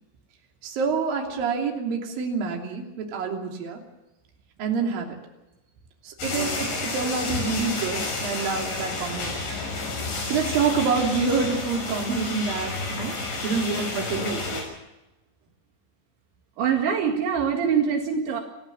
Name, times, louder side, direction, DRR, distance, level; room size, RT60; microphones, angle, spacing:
voice 1, 0.6-3.8 4.6-5.2 6.0-9.5 10.3-14.4, right 5 dB, 50° right, 1 dB, 4.4 m, -27 dB
sound 1, 6.2-14.6, left 3 dB, 75° left, 8.5 m, -30 dB
voice 2, 16.6-18.4, right 7 dB, 75° right, 2 dB, 4.3 m, -24 dB
28.5 x 15.0 x 7.0 m, 1.0 s
omnidirectional pair, 5.4 m